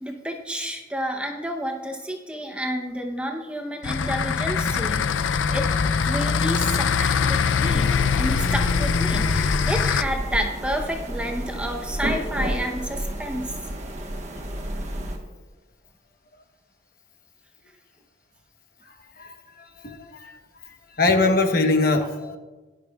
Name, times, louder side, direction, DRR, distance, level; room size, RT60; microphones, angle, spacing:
voice 1, 0.0-5.7 6.0-13.6, equal, 5° right, 2 dB, 0.8 m, -30 dB
sound 1, 3.8-10.0, left 6 dB, 85° left, 0.4 m, -22 dB
sound 2, 7.6-15.2, right 1 dB, 35° right, 1.3 m, -31 dB
voice 2, 19.2-20.3 21.0-22.4, left 3 dB, 50° left, 5 dB, 1.0 m, -23 dB
18.0 x 11.5 x 2.4 m, 1.3 s
head